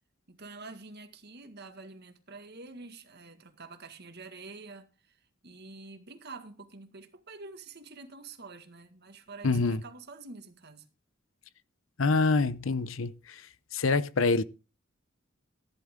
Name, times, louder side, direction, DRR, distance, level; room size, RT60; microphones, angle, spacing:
voice 1, 0.3-10.9, right 3 dB, 55° right, 1.9 m, -47 dB
voice 2, 9.4-9.8 12.0-13.4 13.7-14.4, left 3 dB, 75° left, 0.7 m, -26 dB
15.0 x 11.0 x 3.7 m
head